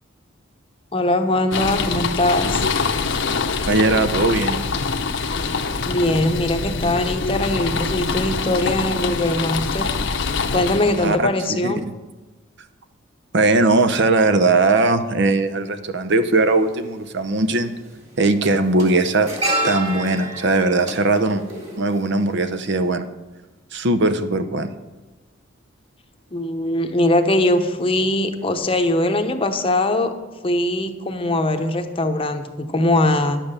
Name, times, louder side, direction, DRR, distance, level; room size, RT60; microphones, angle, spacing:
voice 1, 0.9-2.6 5.9-9.9 10.5-11.8 26.3-30.1 30.4-33.4, left 1 dB, 25° left, 6 dB, 0.8 m, -21 dB
sound 1, 1.5-11.2, left 4 dB, 60° left, 0.8 m, -24 dB
voice 2, 3.7-4.6 11.0-11.7 13.3-17.7 18.2-19.3 19.6-21.4 21.8-23.0 23.7-24.7, right 2 dB, 60° right, 10 dB, 0.7 m, -19 dB
sound 2, 16.3-16.4 17.6-17.9 18.1-22.4 22.7-22.9, right 1 dB, 35° right, 2.9 m, -28 dB
10.5 x 7.6 x 6.7 m, 1.2 s
head